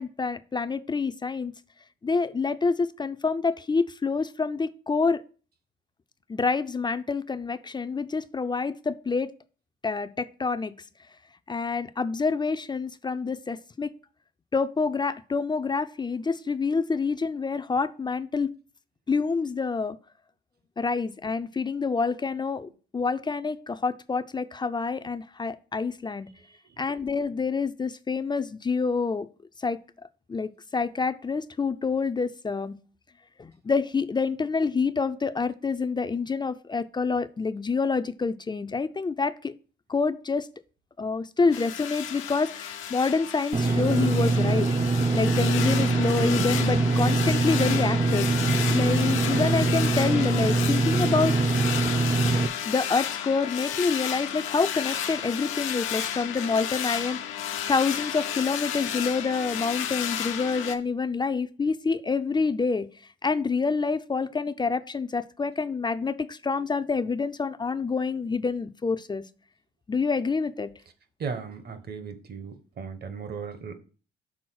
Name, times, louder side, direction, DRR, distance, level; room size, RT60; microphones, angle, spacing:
voice 1, 0.0-1.5 2.0-5.2 6.3-9.3 9.8-10.7 11.5-13.9 14.5-18.5 19.1-20.0 20.8-26.3 26.8-29.3 29.6-29.8 30.3-32.8 33.4-39.5 39.9-40.5 41.0-44.7 45.1-48.3 48.7-51.4 52.7-62.9 63.2-69.2 69.9-70.7, left 4 dB, 20° left, 12 dB, 0.4 m, -27 dB
sound 1, 41.5-60.8, left 10 dB, 90° left, 0.8 m, -32 dB
Engine / Mechanisms, 43.5-52.5, right 3 dB, 30° right, 0.5 m, -23 dB
voice 2, 71.2-73.8, right 5 dB, 55° right, 9 dB, 1.1 m, -36 dB
6.2 x 3.9 x 6.2 m, 0.39 s
cardioid pair, 90°, 20 cm